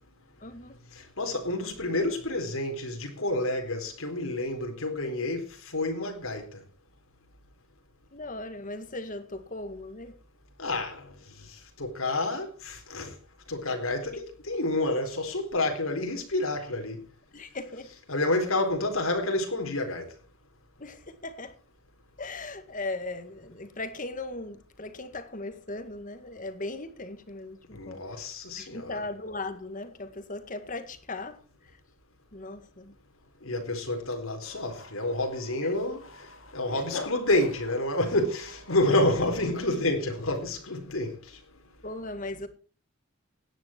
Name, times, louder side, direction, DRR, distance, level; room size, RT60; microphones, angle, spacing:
voice 1, 0.4-0.8 8.1-10.1 17.3-17.9 20.8-21.6 22.2-31.8 32.3-33.0 35.6-35.7 36.7-37.0 41.8-42.5, left 2 dB, 40° left, 1.9 m, -38 dB
voice 2, 0.9-6.6 10.6-11.1 11.8-13.1 13.5-17.0 18.1-20.1 27.7-29.0 33.4-36.0 36.5-41.1, left 2 dB, 90° left, 4.1 m, -29 dB
sound 1, 34.4-39.5, left 3 dB, 75° left, 2.0 m, -44 dB
17.0 x 10.5 x 4.5 m
head